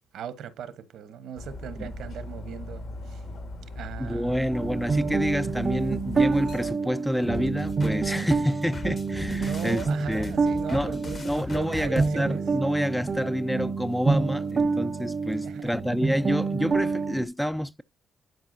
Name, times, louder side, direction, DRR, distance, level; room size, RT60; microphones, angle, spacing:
voice 1, 0.1-3.2 3.7-4.6 9.4-12.4 15.4-15.7, right 8 dB, 75° right, 1.1 m, -38 dB
Dog, 1.4-6.7, left 2 dB, 65° left, 2.2 m, -39 dB
voice 2, 4.0-9.8 10.1-10.4 10.7-17.8, equal, ahead, 0.3 m, -28 dB
sound 1, 4.5-17.2, right 4 dB, 35° right, 0.6 m, -28 dB
sound 2, 7.2-12.1, left 4 dB, 35° left, 1.0 m, -38 dB
11.0 x 4.6 x 2.6 m
cardioid pair, 90°, 0 cm